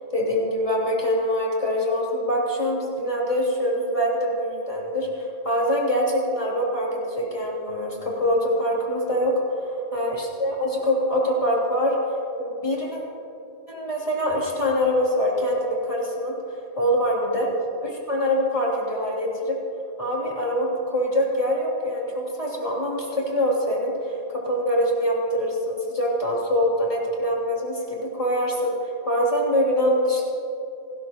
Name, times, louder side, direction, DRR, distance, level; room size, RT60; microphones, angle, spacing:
voice 1, 0.1-12.0 12.4-13.0 13.7-16.3 16.8-17.5 17.8-19.6 20.0-28.7 29.0-30.2, equal, 30° left, -4 dB, 3.2 m, -24 dB
28.5 x 13.0 x 3.0 m, 2.8 s
omnidirectional pair, 1.2 m